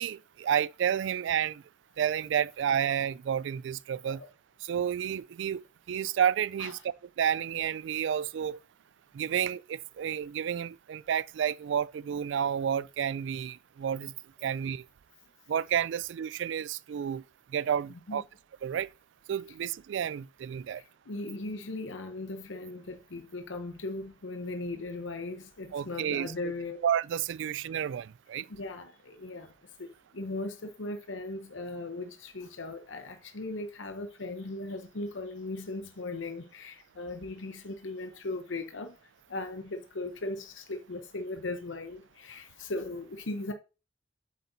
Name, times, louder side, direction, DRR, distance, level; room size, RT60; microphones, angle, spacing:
voice 1, 0.0-1.6 2.0-4.2 4.6-5.6 5.9-6.8 7.2-8.6 9.1-14.1 14.4-14.8 15.5-17.2 17.5-18.2 18.6-18.9 19.3-20.8 25.7-26.3 26.8-28.5, right 9 dB, 70° right, 0.3 m, -30 dB
voice 2, 17.9-18.2 19.5-19.6 20.7-26.8 28.5-39.0 39.3-43.5, left 2 dB, 80° left, 0.8 m, -38 dB
8.4 x 7.9 x 2.7 m
head